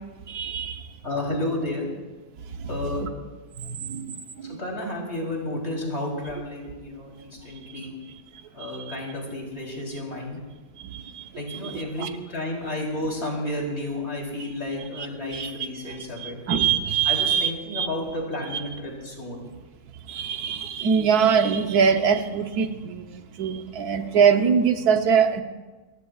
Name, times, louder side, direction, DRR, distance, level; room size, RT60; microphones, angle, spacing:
voice 1, 0.3-0.8 2.6-2.7 3.0-3.1 3.6-4.1 4.4-4.6 8.6-9.0 10.8-12.1 14.9-17.9 18.5-18.7 20.1-25.4, right 7 dB, 90° right, 7 dB, 1.4 m, -24 dB
voice 2, 1.0-1.9 2.7-3.0 4.5-7.9 8.5-10.4 11.3-16.4 17.1-19.5, left 1 dB, 45° left, -1 dB, 3.7 m, -31 dB
29.0 x 15.0 x 2.3 m, 1.3 s
omnidirectional pair, 1.6 m